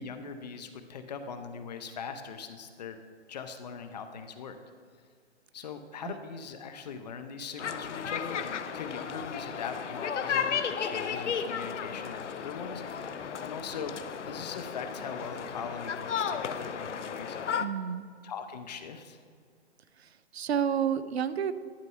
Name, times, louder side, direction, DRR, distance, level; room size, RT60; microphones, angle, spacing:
voice 1, 0.0-3.0 3.3-4.6 5.5-17.5 18.2-19.2, left 5 dB, 35° left, 8 dB, 0.6 m, -41 dB
sound 1, 7.6-17.7, left 7 dB, 80° left, 0.7 m, -34 dB
voice 2, 17.6-18.0 20.3-21.5, right 8 dB, 65° right, 14 dB, 0.5 m, -29 dB
11.5 x 4.5 x 5.5 m, 2.1 s
hypercardioid pair, 145°, 35 cm